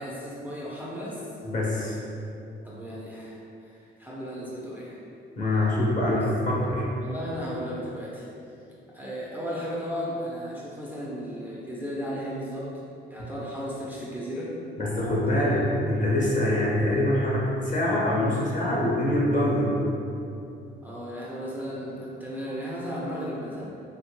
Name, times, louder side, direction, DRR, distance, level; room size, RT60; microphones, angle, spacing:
voice 1, 0.0-1.3 2.6-5.0 5.6-5.7 6.1-6.3 7.0-8.3 8.9-12.7 13.1-14.5 15.3-15.6 20.8-23.7, equal, 10° right, -7 dB, 0.5 m, -35 dB
voice 2, 1.4-2.0 5.4-6.8 14.8-19.8, left 1 dB, 40° left, -5 dB, 0.8 m, -24 dB
3.0 x 2.2 x 2.9 m, 2.7 s
cardioid pair, 90°, 20 cm